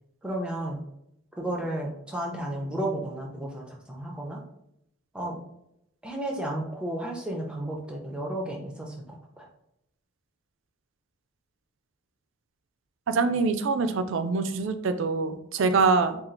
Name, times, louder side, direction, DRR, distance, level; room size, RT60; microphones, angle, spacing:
voice 1, 0.2-0.8 1.4-4.4 5.1-5.4 6.0-9.5, right 1 dB, 5° right, 0 dB, 0.6 m, -33 dB
voice 2, 13.1-16.2, right 4 dB, 60° right, 8 dB, 0.4 m, -24 dB
4.3 x 2.4 x 3.8 m, 0.80 s
head